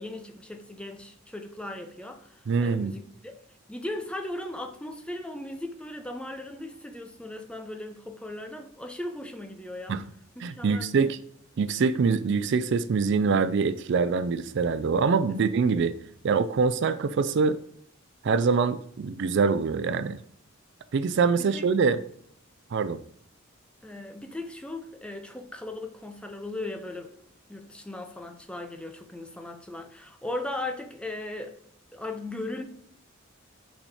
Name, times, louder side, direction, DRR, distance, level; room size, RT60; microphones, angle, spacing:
voice 1, 0.0-3.3 3.7-10.0 10.6-11.1 15.3-15.4 21.4-21.7 23.8-27.1 27.5-31.5 31.9-32.6, left 2 dB, 5° left, 0.7 m, -37 dB
voice 2, 2.5-2.9 9.9-10.0 10.4-11.2 11.6-16.0 16.2-17.6 18.2-20.2 20.9-22.0 22.7-23.0, right 5 dB, 60° right, 0.4 m, -24 dB
5.9 x 4.2 x 4.7 m
head